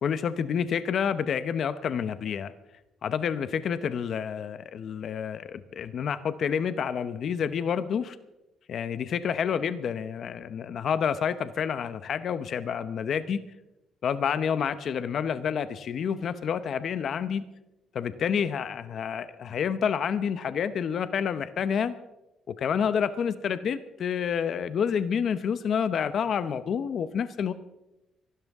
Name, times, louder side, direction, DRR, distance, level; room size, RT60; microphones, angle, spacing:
voice 1, 0.0-2.5 3.0-8.2 8.7-13.4 14.0-17.4 17.9-22.0 22.5-27.5, left 7 dB, 60° left, 13 dB, 0.8 m, -29 dB
25.0 x 12.5 x 3.6 m, 0.95 s
cardioid pair, 95°, 0 cm